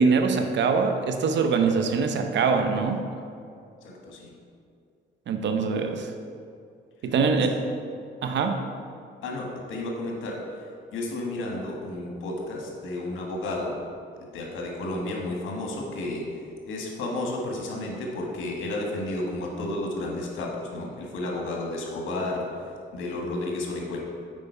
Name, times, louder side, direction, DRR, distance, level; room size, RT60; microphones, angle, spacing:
voice 1, 0.0-3.0 5.3-6.1 7.0-7.5 8.2-8.6, right 5 dB, 65° right, 6 dB, 0.8 m, -23 dB
voice 2, 3.8-4.3 7.0-7.5 9.2-10.6 10.9-13.8 14.2-16.4 16.7-22.6 22.9-24.0, left 2 dB, 80° left, -1 dB, 1.5 m, -32 dB
7.3 x 5.1 x 4.5 m, 2.4 s
cardioid pair, 90°, 20 cm